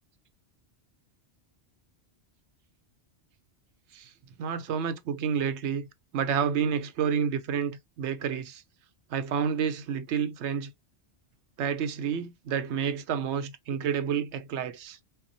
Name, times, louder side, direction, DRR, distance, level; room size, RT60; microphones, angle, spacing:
voice 1, 4.4-5.9 6.1-8.6 9.1-10.7 11.6-15.0, right 7 dB, 90° right, 0.9 m, -29 dB
5.6 x 2.1 x 2.7 m
omnidirectional pair, 1.1 m